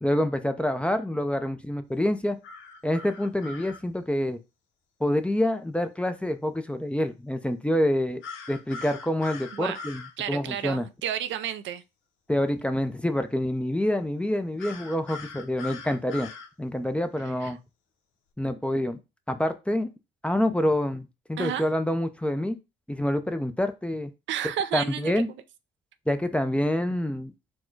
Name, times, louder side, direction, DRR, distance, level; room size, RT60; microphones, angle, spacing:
voice 1, 0.0-2.4 2.8-4.4 5.0-8.2 8.5-10.0 10.3-10.9 12.3-16.3 16.6-17.6 18.4-19.0 19.3-19.9 20.2-22.6 22.9-24.1 24.7-25.3 26.1-27.3, left 1 dB, 5° left, 0.5 m, -27 dB
sound 1, 2.4-3.8 8.2-10.1 14.6-16.5, left 4 dB, 90° left, 0.9 m, -41 dB
voice 2, 10.2-11.8 17.4-17.5 21.4-21.7 24.3-25.2, right 10 dB, 70° right, 0.4 m, -31 dB
4.4 x 2.2 x 4.5 m
cardioid pair, 90°, 20 cm